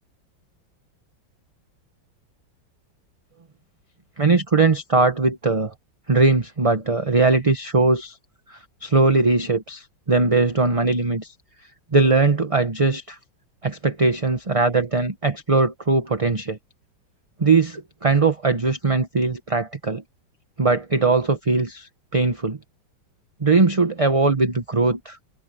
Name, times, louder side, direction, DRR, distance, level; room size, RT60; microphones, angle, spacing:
voice 1, 4.2-5.7 6.1-8.2 8.5-11.3 11.9-13.2 13.6-16.6 17.4-20.0 20.6-22.6 23.4-25.2, right 3 dB, 25° right, 0.9 m, -20 dB
omnidirectional pair, 2.1 m